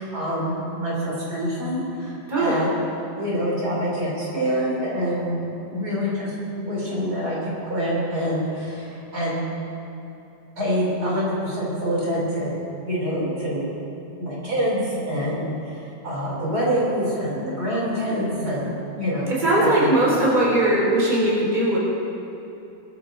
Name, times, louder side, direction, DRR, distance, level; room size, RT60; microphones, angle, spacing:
voice 1, 0.0-2.7 3.2-9.5 10.6-13.6 14.2-19.3 19.6-20.2, equal, 60° right, -6 dB, 4.5 m, -26 dB
voice 2, 2.3-2.6 19.3-21.8, right 1 dB, 25° right, -6 dB, 3.7 m, -19 dB
21.5 x 14.0 x 3.9 m, 2.9 s
omnidirectional pair, 1.9 m